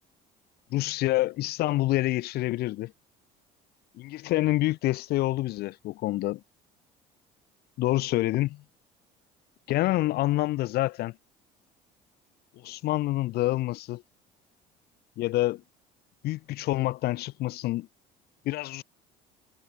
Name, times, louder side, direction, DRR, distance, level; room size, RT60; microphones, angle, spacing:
voice 1, 0.7-2.9 3.9-6.4 7.8-8.6 9.7-11.2 12.6-14.0 15.2-15.6 16.2-17.9 18.4-18.8, left 17 dB, 65° left, 0.8 m, -27 dB
supercardioid pair, 95°, 17 cm